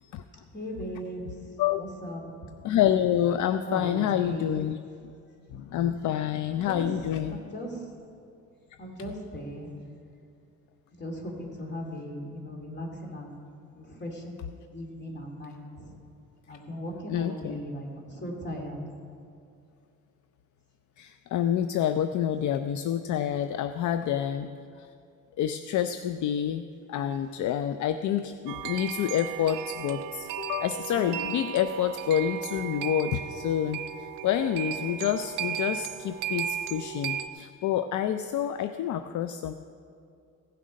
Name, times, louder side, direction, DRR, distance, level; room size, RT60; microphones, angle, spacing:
voice 1, 0.5-2.2 3.6-4.5 6.5-6.9 7.2-8.0 8.8-9.8 11.0-13.4 13.7-16.0 16.5-18.8, equal, 35° left, 1 dB, 2.6 m, -38 dB
voice 2, 2.6-4.8 5.5-7.4 17.1-17.6 21.0-24.5 24.8-24.9 25.4-26.6 26.9-39.5, left 10 dB, 65° left, 10 dB, 0.5 m, -28 dB
sound 1, 28.5-37.3, right 11 dB, 85° right, 0.5 m, -35 dB
16.0 x 7.5 x 5.3 m, 2.4 s
cardioid pair, 95°, 32 cm